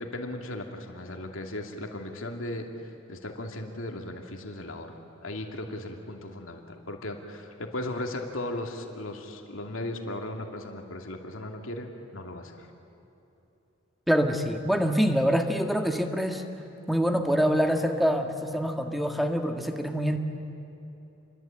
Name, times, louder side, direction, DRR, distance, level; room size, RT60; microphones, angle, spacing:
voice 1, 0.0-12.7, left 1 dB, 90° left, 3 dB, 2.6 m, -37 dB
voice 2, 14.1-16.4 16.9-20.2, equal, ahead, 4 dB, 1.7 m, -25 dB
28.0 x 22.5 x 8.9 m, 3.0 s
head